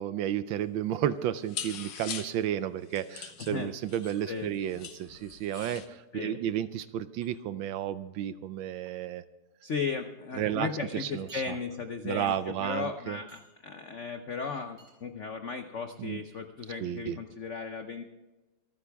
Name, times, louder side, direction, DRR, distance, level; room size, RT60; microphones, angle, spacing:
voice 1, 0.0-9.2 10.4-10.7 11.0-11.5 12.0-13.2 16.0-16.2 16.8-17.2, right 11 dB, 75° right, 14 dB, 1.3 m, -32 dB
sound 1, 0.7-0.9 1.1-5.9, left 8 dB, 60° left, 1.5 m, -43 dB
sound 2, 1.2-1.9 4.0-4.2 5.6-5.7 7.2-7.3 8.7-8.9 9.7-9.8 10.1-10.2 11.3-11.9 12.3-12.6 13.3-13.6 14.8-15.0, right 1 dB, 55° right, 4.8 m, -57 dB
voice 2, 3.4-3.7 4.3-4.5 6.1-6.4 9.6-18.0, left 5 dB, 85° left, 7 dB, 0.6 m, -36 dB
26.0 x 9.5 x 3.5 m, 1.1 s
omnidirectional pair, 2.4 m